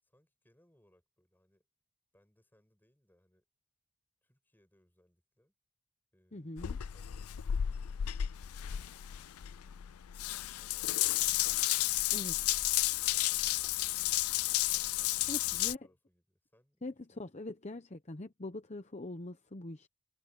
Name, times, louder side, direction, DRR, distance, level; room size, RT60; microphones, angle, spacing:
voice 1, 0.0-1.7 2.1-3.4 4.2-5.5 6.1-9.0 9.5-10.1 14.7-17.4, equal, 10° left, 8.0 m, -71 dB
voice 2, 6.3-6.8 12.1-12.3 15.3-15.8 16.8-19.9, left 2 dB, 30° left, 0.9 m, -43 dB
Water tap faucet / Bathtub (filling or washing) / Drip, 6.6-15.7, left 14 dB, 90° left, 0.5 m, -32 dB
head